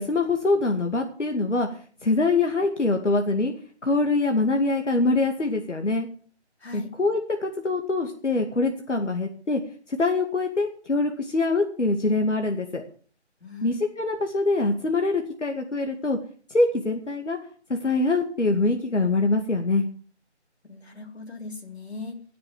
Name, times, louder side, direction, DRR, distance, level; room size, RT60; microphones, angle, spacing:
voice 1, 0.0-3.5 3.8-6.1 6.7-9.6 9.9-12.8 13.6-16.2 16.5-17.4 17.7-19.8, left 3 dB, 90° left, 4 dB, 2.3 m, -24 dB
voice 2, 6.6-7.0 13.4-13.8 20.6-22.2, left 4 dB, 65° left, 3 dB, 3.8 m, -39 dB
17.0 x 6.9 x 7.6 m, 0.43 s
figure-of-eight pair, 175°, 35 cm